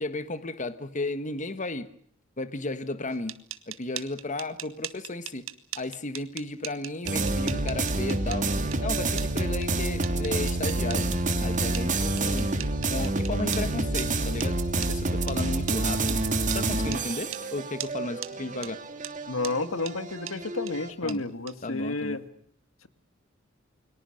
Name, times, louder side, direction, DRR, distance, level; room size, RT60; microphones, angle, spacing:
voice 1, 0.0-1.9 2.4-3.3 3.7-5.4 5.7-8.5 8.8-11.1 11.4-12.5 12.9-16.2 16.5-18.8 21.0-21.2 21.6-22.2, left 2 dB, 40° left, 11 dB, 1.4 m, -34 dB
sound 1, 3.1-13.6 14.0-14.1 14.4-14.5 14.8-14.9 15.3-15.4 15.7-15.8 16.1-16.2 16.5-16.6 16.9-17.0 17.3-17.4 17.8-17.9 18.2-18.3 18.6-18.7 19.0-19.1 19.4-19.5 19.9-20.0 20.3-20.4 20.7-20.8 21.1-21.2 21.5-21.6, right 12 dB, 80° right, 1.8 m, -38 dB
sound 2, 7.1-20.9, right 2 dB, 40° right, 2.9 m, -28 dB
voice 2, 19.3-22.2, left 2 dB, 85° left, 11 dB, 2.0 m, -31 dB
30.0 x 23.0 x 6.5 m, 0.62 s
head